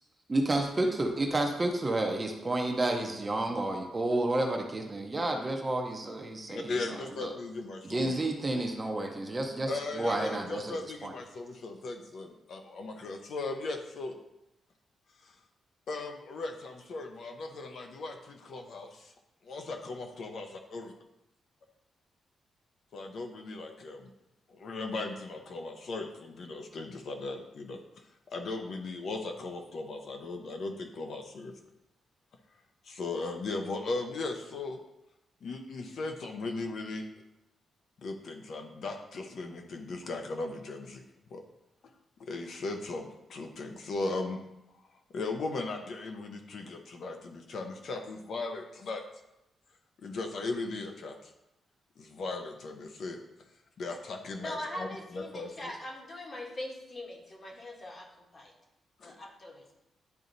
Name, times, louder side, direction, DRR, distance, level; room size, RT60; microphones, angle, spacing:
voice 1, 0.3-6.7 7.2-7.3 7.8-11.1, right 2 dB, 20° right, 2 dB, 0.6 m, -30 dB
voice 2, 6.5-8.1 9.7-14.1 15.2-15.3 15.9-19.1 19.4-20.4 20.7-20.9 22.9-24.1 24.5-27.8 28.3-31.5 32.8-34.8 35.4-37.0 38.0-41.0 41.3-41.4 42.2-44.4 45.1-49.0 50.0-51.3 52.0-53.2 53.8-55.7 59.0-59.1, left 3 dB, 50° left, 4 dB, 0.6 m, -37 dB
voice 3, 54.4-58.5 59.0-59.7, left 1 dB, 30° left, 1 dB, 1.0 m, -41 dB
10.5 x 3.9 x 2.6 m, 0.90 s
wide cardioid pair, 175°, 0 cm